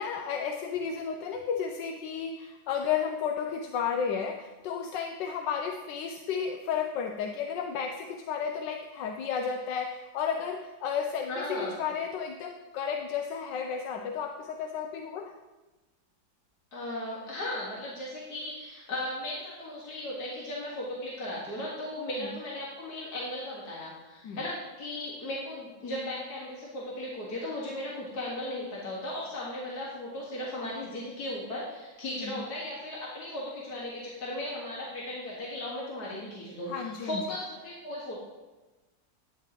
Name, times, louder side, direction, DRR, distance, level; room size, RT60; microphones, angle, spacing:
voice 1, 0.0-15.3 22.2-22.3 24.2-24.4 32.2-32.4 36.7-37.2, left 7 dB, 75° left, 4 dB, 1.3 m, -33 dB
voice 2, 11.3-11.8 16.7-38.2, left 1 dB, 60° left, -6 dB, 2.3 m, -36 dB
12.0 x 9.7 x 3.0 m, 1.1 s
omnidirectional pair, 2.0 m